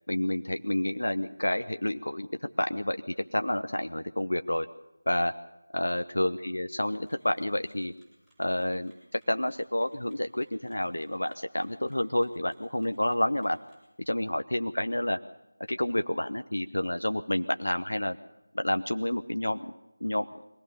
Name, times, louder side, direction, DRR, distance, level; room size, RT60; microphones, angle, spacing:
voice 1, 0.1-4.7 5.1-5.3 5.7-7.9 8.4-13.6 14.1-15.2 15.7-18.2 18.5-19.7 20.0-20.3, left 1 dB, 70° left, 8 dB, 0.9 m, -29 dB
sound 1, 6.8-13.9, equal, 5° right, 6.3 m, -67 dB
22.5 x 17.0 x 6.9 m, 0.96 s
figure-of-eight pair, 165°, 0 cm